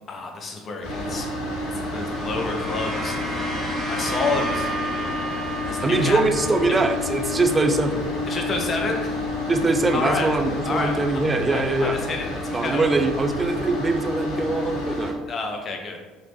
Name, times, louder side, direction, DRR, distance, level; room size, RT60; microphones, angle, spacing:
voice 1, 0.1-1.3 1.9-3.6 3.9-4.7 5.7-6.2 6.6-6.7 8.3-9.2 9.9-10.3 10.6-11.0 11.5-12.9 15.3-16.0, left 3 dB, 40° left, 2 dB, 0.6 m, -29 dB
sound 1, 0.8-15.1, left 2 dB, 60° left, 1.2 m, -30 dB
sound 2, 1.6-10.1, right 1 dB, ahead, 0.9 m, -34 dB
voice 2, 5.8-8.0 9.5-12.0 12.5-15.2, right 3 dB, 20° right, 5 dB, 0.4 m, -22 dB
2.9 x 2.5 x 3.3 m, 1.3 s
figure-of-eight pair, 60°, 0 cm